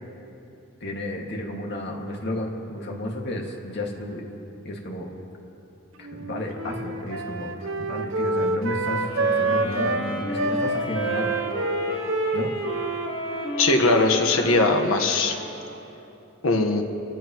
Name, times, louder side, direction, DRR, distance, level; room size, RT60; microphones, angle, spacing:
voice 1, 0.8-4.2 4.6-5.1 6.0-11.3 12.3-12.5, left 1 dB, 55° left, 0 dB, 2.1 m, -32 dB
Wind instrument woodwind instrument, 6.0-10.0 10.3-14.8, right 2 dB, 70° right, 0.8 m, -28 dB
sound 1, 9.0-15.6, equal, 30° left, 3.7 m, -32 dB
voice 2, 13.6-15.4 16.4-16.8, left 2 dB, 85° left, 4 dB, 1.4 m, -20 dB
29.0 x 14.5 x 3.1 m, 3.0 s
head